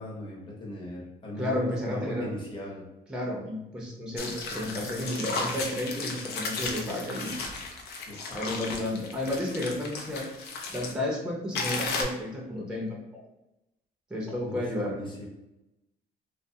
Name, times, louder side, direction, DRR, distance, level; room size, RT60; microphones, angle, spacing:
voice 1, 0.0-2.8 8.1-8.8 14.4-15.2, left 1 dB, 30° left, -3 dB, 0.9 m, -39 dB
voice 2, 1.4-2.3 3.1-7.4 8.3-10.3 10.7-13.2 14.1-15.0, left 1 dB, 5° right, -3 dB, 0.6 m, -32 dB
sound 1, 4.2-10.9 11.5-12.0, left 4 dB, 75° left, 0.5 m, -35 dB
2.4 x 2.3 x 2.7 m, 0.95 s
cardioid pair, 110°, 17 cm